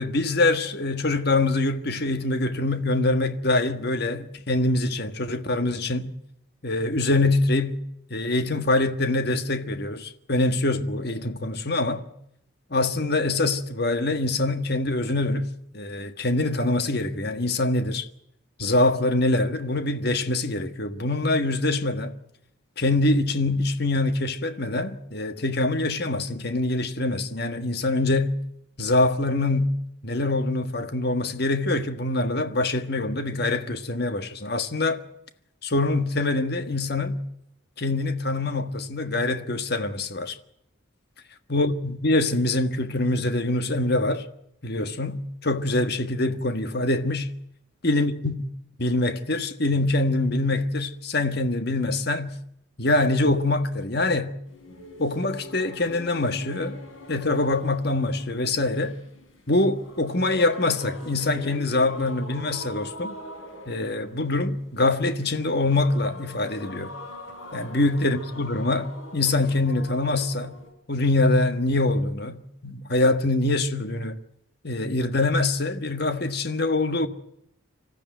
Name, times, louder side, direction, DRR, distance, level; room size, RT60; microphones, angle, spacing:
voice 1, 0.0-6.1 6.6-7.8 8.1-12.1 12.7-18.1 18.6-22.1 22.8-28.4 28.8-29.8 30.0-35.0 35.6-37.2 37.8-40.4 41.5-44.3 44.6-47.3 47.8-48.5 48.8-52.4 52.8-54.4 55.0-56.8 57.1-59.0 59.5-63.1 63.7-66.9 67.5-70.5 70.9-74.2 74.6-77.1, left 2 dB, 50° left, 1.5 m, -24 dB
sound 1, 54.5-70.7, left 1 dB, 75° left, 6.1 m, -43 dB
25.5 x 14.0 x 9.2 m
head